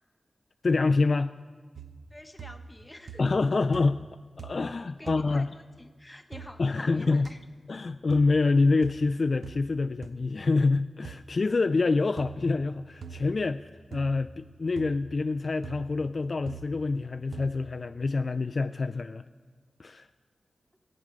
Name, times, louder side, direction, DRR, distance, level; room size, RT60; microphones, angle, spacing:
voice 1, 0.6-1.4 3.2-4.0 4.4-5.5 6.6-7.3 7.7-19.2 19.8-20.1, left 3 dB, 45° left, 10 dB, 0.3 m, -26 dB
sound 1, 1.8-2.1 2.4-2.8 3.1-3.5 3.7-4.1 4.4-4.7 5.1-5.3 6.3-6.5 7.2-7.3 8.1-8.3 8.8-9.0 9.4-9.6 10.0-10.1 11.0-11.2 12.2-12.4 13.0-13.3 13.9-14.2 14.8-15.0 15.6-15.9 16.5-16.7 17.3-17.6, right 6 dB, 80° right, 0.7 m, -43 dB
voice 2, 2.1-3.3 5.0-7.4, left 1 dB, 15° left, 7 dB, 0.9 m, -48 dB
18.5 x 8.7 x 5.2 m, 1.5 s
wide cardioid pair, 110°, 0 cm